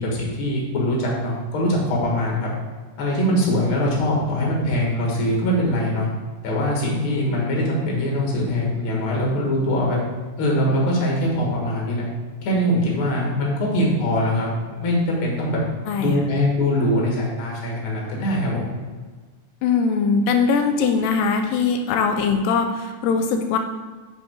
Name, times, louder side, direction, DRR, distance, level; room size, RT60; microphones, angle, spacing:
voice 1, 0.0-2.5 3.0-6.1 6.4-10.0 10.4-12.1 12.4-15.6 16.0-18.8, left 1 dB, 50° left, -3 dB, 2.0 m, -22 dB
voice 2, 15.9-16.2 19.6-23.6, left 5 dB, 85° left, 6 dB, 2.2 m, -21 dB
5.3 x 5.3 x 4.4 m, 1.4 s
omnidirectional pair, 3.9 m